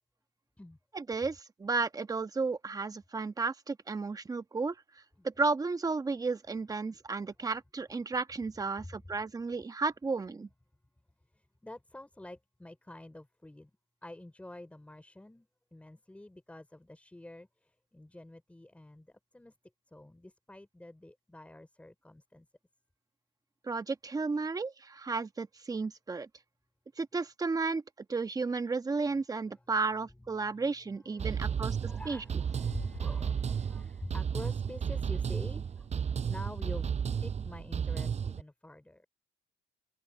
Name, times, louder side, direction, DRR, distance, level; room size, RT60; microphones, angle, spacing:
voice 1, 0.9-4.8 5.2-10.5 23.6-26.3 27.0-27.8 28.1-32.2, right 4 dB, 20° right, 1.2 m, -33 dB
voice 2, 11.3-13.7 14.0-19.5 19.9-22.5 29.5-29.6 30.4-30.6 31.0-36.9 37.2-39.1, left 1 dB, 10° left, 3.8 m, -47 dB
sound 1, 31.2-38.4, right 7 dB, 40° right, 6.5 m, -33 dB
cardioid pair, 110°, 17 cm